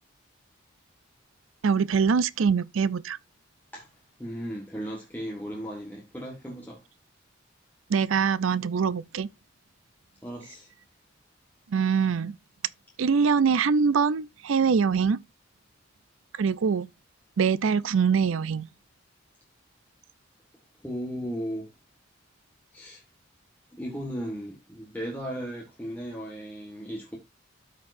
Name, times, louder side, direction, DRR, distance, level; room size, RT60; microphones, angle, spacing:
voice 1, 1.6-3.2 7.9-9.3 11.7-12.4 13.0-15.2 16.4-16.9 17.4-18.7, right 6 dB, 80° right, 0.5 m, -23 dB
voice 2, 4.2-6.8 10.2-10.7 20.8-21.7 22.7-23.0 23.7-27.2, equal, 10° left, 1.4 m, -36 dB
13.0 x 4.5 x 2.5 m
head